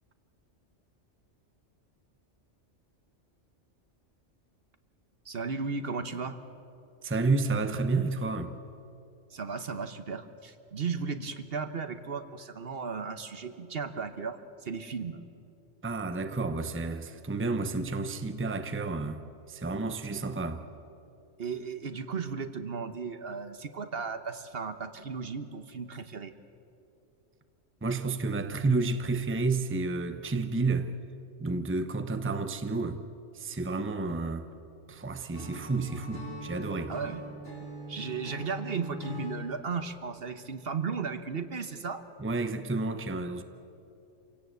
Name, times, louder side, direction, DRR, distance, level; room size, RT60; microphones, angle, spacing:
voice 1, 5.2-6.4 9.3-15.2 21.4-26.3 36.9-37.3 37.9-42.0, right 5 dB, 55° right, 1.2 m, -35 dB
voice 2, 7.0-8.6 15.8-19.2 19.5-20.6 27.8-30.9 31.4-33.0 33.3-34.5 34.9-36.9 42.2-43.4, right 3 dB, 10° right, 0.8 m, -30 dB
Acoustic guitar / Strum, 35.3-39.4, equal, 75° left, 5.3 m, -41 dB
27.0 x 17.0 x 8.1 m
omnidirectional pair, 1.2 m